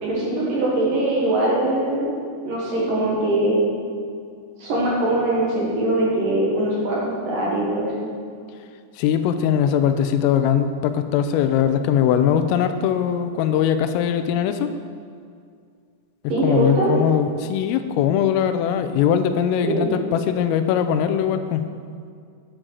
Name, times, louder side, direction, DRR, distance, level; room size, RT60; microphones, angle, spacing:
voice 1, 0.0-2.1 2.4-3.7 4.6-8.1 16.3-16.9 19.6-20.0, right 1 dB, 60° right, -5 dB, 2.5 m, -22 dB
voice 2, 9.0-14.7 16.4-21.7, left 9 dB, 90° left, 9 dB, 3.2 m, -21 dB
10.0 x 8.9 x 6.4 m, 2.2 s
omnidirectional pair, 5.8 m